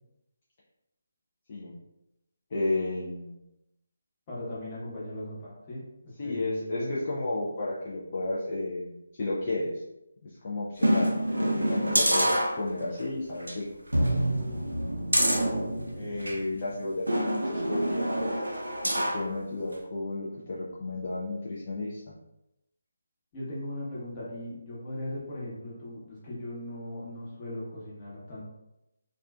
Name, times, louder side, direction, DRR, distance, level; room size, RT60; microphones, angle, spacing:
voice 1, 2.5-3.5 6.2-9.8 10.2-11.1 11.4-12.3 12.6-13.6 14.0-14.1 15.9-18.6 18.9-22.0, left 2 dB, 40° left, -7 dB, 0.4 m, -33 dB
voice 2, 4.3-6.9 11.9-12.3 23.3-28.4, left 1 dB, 25° left, -8 dB, 1.0 m, -38 dB
sound 1, 10.8-13.0 13.4-13.5 13.9-16.4 17.1-19.3 19.7-19.8, right 1 dB, 85° right, 0.5 m, -26 dB
2.4 x 2.3 x 2.3 m, 0.90 s
figure-of-eight pair, 150°, 0 cm